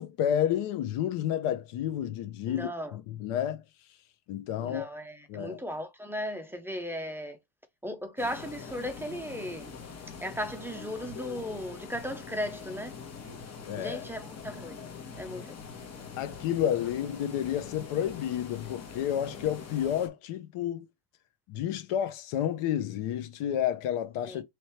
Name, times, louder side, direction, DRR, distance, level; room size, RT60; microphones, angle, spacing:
voice 1, 0.0-3.6 4.3-4.9 5.3-5.6 13.7-14.0 16.0-20.9 21.5-24.4, left 10 dB, 85° left, 0.9 m, -30 dB
voice 2, 2.5-2.9 4.6-7.4 7.8-9.8 10.2-13.0 13.8-14.8 15.2-15.5 24.3-24.4, equal, 5° right, 0.3 m, -36 dB
sound 1, 8.2-20.1, left 6 dB, 30° left, 1.2 m, -43 dB
3.2 x 3.1 x 4.3 m
cardioid pair, 175°, 50 cm